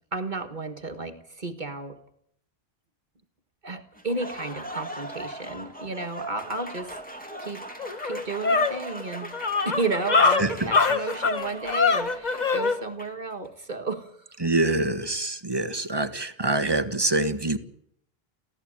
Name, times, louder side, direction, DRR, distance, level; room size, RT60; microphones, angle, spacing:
voice 1, 0.1-2.0 3.6-7.0 7.4-7.7 8.0-9.3 9.7-14.1, right 3 dB, 50° right, 6 dB, 1.7 m, -32 dB
Applause, 3.9-13.3, right 1 dB, 10° left, 2.7 m, -40 dB
sound 1, 7.3-7.4 7.8-12.8, left 4 dB, 45° left, 1.3 m, -23 dB
voice 2, 10.4-10.7 11.0-11.1 14.4-17.6, right 2 dB, 25° right, 10 dB, 1.4 m, -25 dB
23.5 x 16.0 x 8.8 m, 0.72 s
omnidirectional pair, 1.1 m